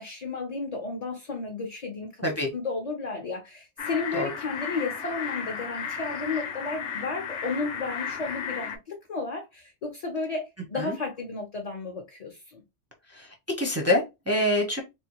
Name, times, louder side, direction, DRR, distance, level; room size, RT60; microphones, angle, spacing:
voice 1, 0.0-2.2 2.5-12.6, left 3 dB, 40° left, 0.7 m, -33 dB
sound 1, 3.8-8.8, left 6 dB, 75° left, 0.9 m, -34 dB
voice 2, 13.1-14.8, left 1 dB, 15° right, 0.5 m, -26 dB
3.5 x 2.2 x 2.9 m
omnidirectional pair, 1.3 m